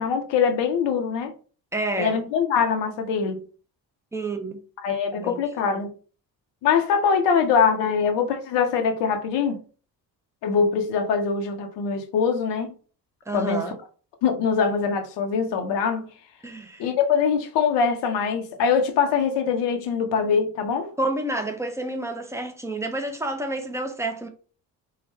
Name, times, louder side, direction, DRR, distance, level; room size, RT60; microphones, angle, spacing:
voice 1, 0.0-1.3 2.0-3.4 4.8-5.9 6.6-9.6 10.4-12.7 13.3-13.6 14.2-16.1 16.8-20.9, left 6 dB, 60° left, 0.8 m, -23 dB
voice 2, 1.7-2.2 4.1-4.6 5.1-5.4 5.7-5.8 13.3-13.8 16.4-16.9 21.0-24.3, right 2 dB, 5° right, 0.6 m, -29 dB
3.8 x 2.1 x 2.7 m
figure-of-eight pair, 40°, 50 cm